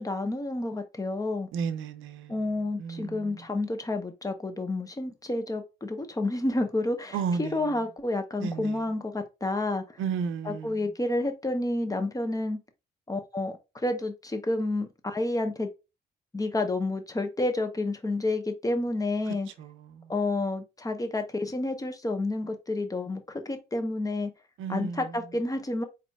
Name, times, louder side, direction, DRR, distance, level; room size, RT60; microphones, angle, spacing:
voice 1, 0.0-1.5 2.3-10.0 10.4-12.6 13.1-15.7 16.3-19.5 20.1-24.3 24.7-25.8, left 2 dB, 15° left, 1.1 m, -30 dB
voice 2, 1.5-2.4 2.8-3.4 7.1-7.6 8.4-8.8 10.0-10.8 19.6-20.1 24.6-25.1, right 6 dB, 85° right, 0.8 m, -33 dB
4.2 x 4.1 x 2.4 m
cardioid pair, 90°, 20 cm